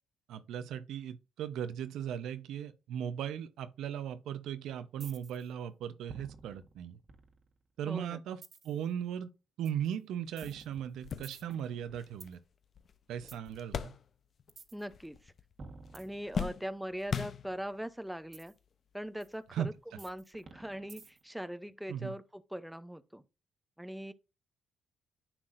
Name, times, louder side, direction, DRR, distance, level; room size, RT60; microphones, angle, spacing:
voice 1, 0.3-7.0 7.8-8.4 8.6-9.3 9.6-12.4 13.1-13.9 19.5-19.7 21.9-22.1, right 9 dB, 80° right, 0.7 m, -37 dB
sound 1, 5.0-5.5 6.1-7.7 8.4-8.8 9.6-9.9 10.4-12.3 13.3-13.5 14.5-14.8 15.6-16.7 18.3-18.5 19.2-19.3 20.0-21.4, right 4 dB, 40° right, 1.4 m, -52 dB
voice 2, 7.9-8.2 14.7-15.3 15.9-18.5 18.9-23.2 23.8-24.1, equal, 5° right, 0.6 m, -41 dB
sound 2, 10.3-10.4 10.8-14.6 14.8-15.5 15.8-17.9 18.7-18.8 20.1-20.2, left 7 dB, 50° left, 0.6 m, -40 dB
10.0 x 6.0 x 2.6 m
cardioid pair, 90°, 0 cm